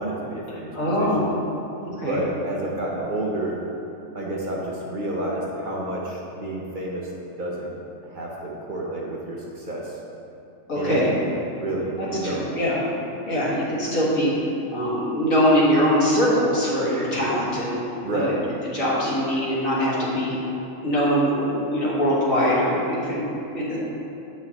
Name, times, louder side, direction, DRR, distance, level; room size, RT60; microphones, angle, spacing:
voice 1, 0.0-1.3 1.9-3.6 4.1-7.1 7.4-7.7 8.0-9.9 10.8-12.5 18.0-18.4, right 1 dB, 45° right, -3 dB, 0.7 m, -29 dB
voice 2, 0.7-1.4 1.8-2.2 10.7-11.1 12.0-12.8 13.3-14.3 14.7-17.8 18.1-18.3 18.6-20.3 20.8-23.3 23.6-23.8, equal, 80° left, -8 dB, 2.1 m, -22 dB
8.5 x 5.6 x 2.9 m, 3.0 s
omnidirectional pair, 1.4 m